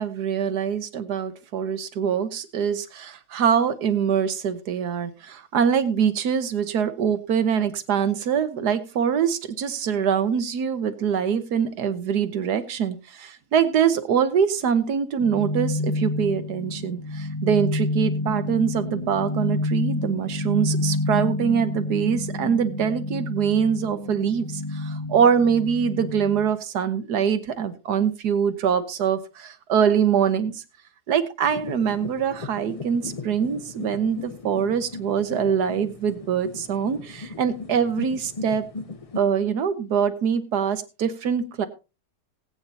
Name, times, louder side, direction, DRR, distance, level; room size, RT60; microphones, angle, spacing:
voice 1, 0.0-30.6 31.1-38.6 39.2-41.7, right 7 dB, 90° right, 11 dB, 1.6 m, -24 dB
sound 1, 15.2-26.5, left 2 dB, 20° left, 1.4 m, -29 dB
sound 2, 31.4-39.2, left 4 dB, 40° left, 0.5 m, -38 dB
19.0 x 8.9 x 2.8 m, 0.30 s
omnidirectional pair, 1.7 m